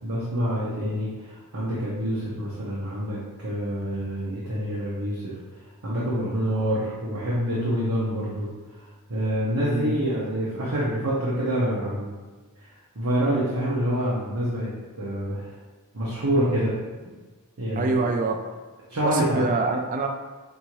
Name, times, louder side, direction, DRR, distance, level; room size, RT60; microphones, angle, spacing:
voice 1, 0.0-5.4 5.8-8.8 9.1-12.1 12.6-12.7 12.9-14.7 15.0-15.5 15.9-16.7 17.6-18.1 18.9-19.5, equal, 80° right, -7 dB, 1.0 m, -27 dB
voice 2, 9.6-10.0 17.8-18.4 19.0-20.1, right 3 dB, 35° right, 4 dB, 0.3 m, -25 dB
5.3 x 2.7 x 3.1 m, 1.3 s
head